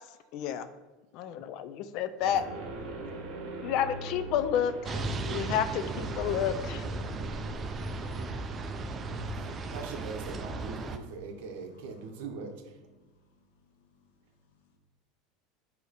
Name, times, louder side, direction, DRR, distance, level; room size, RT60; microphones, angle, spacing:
voice 1, 0.3-0.7 1.1-2.4 3.6-6.8, left 9 dB, 55° left, 0.4 m, -30 dB
sound 1, 2.2-8.3, right 2 dB, 50° right, 1.0 m, -42 dB
sound 2, 4.8-11.0, right 2 dB, 30° right, 0.4 m, -36 dB
voice 2, 9.6-12.5, right 4 dB, 75° right, 0.7 m, -41 dB
voice 3, 10.9-14.8, left 2 dB, 85° left, 0.7 m, -63 dB
4.7 x 2.8 x 4.0 m
supercardioid pair, 115°, 0 cm